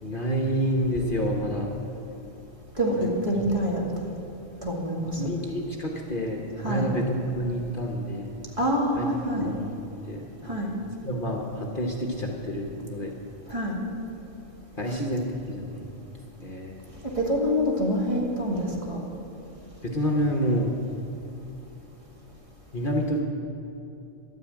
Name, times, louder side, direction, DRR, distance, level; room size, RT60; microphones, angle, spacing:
voice 1, 0.0-1.7 3.0-3.1 3.4-3.5 5.0-8.3 9.0-9.1 9.3-9.8 10.1-10.6 11.0-13.2 14.8-16.0 16.4-16.8 19.8-20.8 22.7-23.2, equal, 45° left, 1 dB, 1.2 m, -28 dB
voice 2, 3.2-3.8 4.6-5.1 6.6-6.8 8.6-9.5 10.5-10.7 13.5-13.8 14.9-15.0 17.2-19.0, equal, 25° right, -3 dB, 2.2 m, -26 dB
12.0 x 9.5 x 8.8 m, 2.9 s
omnidirectional pair, 1.3 m